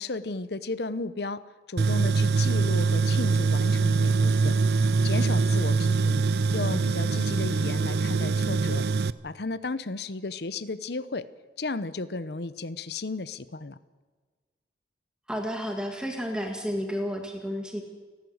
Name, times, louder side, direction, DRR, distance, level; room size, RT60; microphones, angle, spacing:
voice 1, 0.0-1.4 1.7-6.2 6.5-8.8 9.2-11.3 11.6-13.8, left 3 dB, 60° left, 15 dB, 0.8 m, -34 dB
Tools, 1.8-9.1, right 4 dB, 60° right, 0.5 m, -23 dB
voice 2, 15.3-17.8, equal, 5° right, 3 dB, 1.8 m, -31 dB
30.0 x 12.0 x 8.0 m, 1.4 s
head